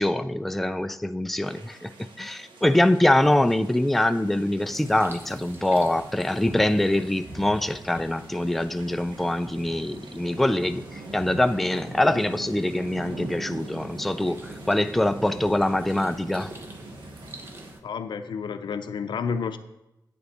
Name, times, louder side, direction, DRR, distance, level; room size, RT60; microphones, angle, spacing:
voice 1, 0.0-1.9 2.2-16.5, left 1 dB, ahead, 10 dB, 0.3 m, -24 dB
sound 1, 1.4-17.7, right 3 dB, 85° right, 1.2 m, -44 dB
sound 2, 4.6-17.8, right 1 dB, 30° right, 1.0 m, -44 dB
voice 2, 17.8-19.6, left 6 dB, 80° left, 10 dB, 0.6 m, -30 dB
9.1 x 6.9 x 4.1 m, 0.90 s
wide cardioid pair, 115°, 8 cm